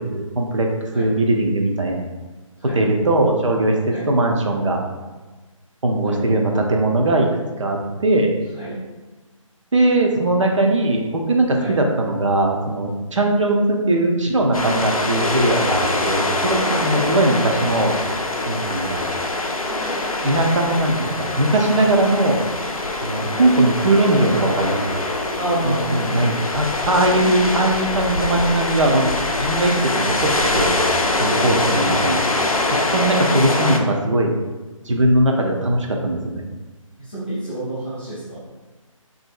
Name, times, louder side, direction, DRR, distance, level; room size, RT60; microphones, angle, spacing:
voice 1, 0.1-0.7 0.9-2.0 2.7-4.8 5.8-8.3 9.7-18.0 18.5-19.1 20.2-22.4 23.0-25.0 25.6-30.8 31.2-32.2 32.9-34.3 34.9-36.4, right 1 dB, 60° right, 1 dB, 0.5 m, -20 dB
sound 1, 14.5-33.8, left 2 dB, 85° left, 0.4 m, -23 dB
voice 2, 25.4-26.3 27.0-27.4 31.3-32.3 33.0-33.3 37.0-38.5, right 1 dB, 15° left, -12 dB, 0.4 m, -29 dB
2.8 x 2.6 x 2.4 m, 1.2 s
figure-of-eight pair, 150°, 18 cm